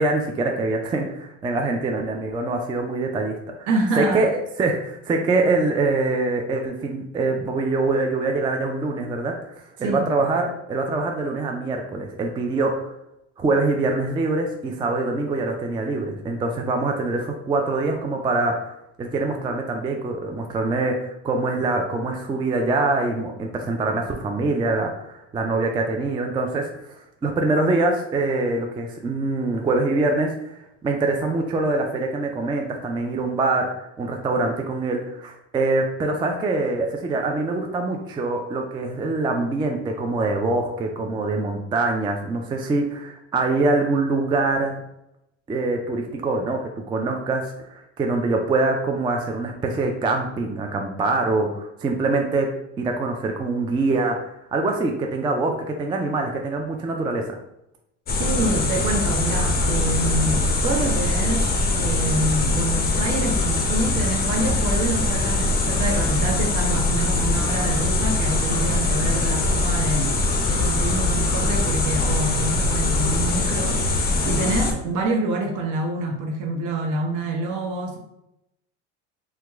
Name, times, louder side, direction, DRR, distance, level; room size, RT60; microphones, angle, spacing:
voice 1, 0.0-3.7 3.9-4.3 4.6-12.9 13.4-44.8 45.5-46.6 46.9-52.5 52.8-54.2 54.5-57.3, right 3 dB, 15° right, 2 dB, 0.3 m, -24 dB
voice 2, 3.7-4.2 9.8-10.1 58.2-70.2 70.5-78.0, right 2 dB, 55° right, 2 dB, 0.9 m, -26 dB
sound 1, 58.1-74.7, left 2 dB, 25° left, 0.6 m, -22 dB
2.9 x 2.2 x 3.4 m, 0.84 s
supercardioid pair, 100°, 35 cm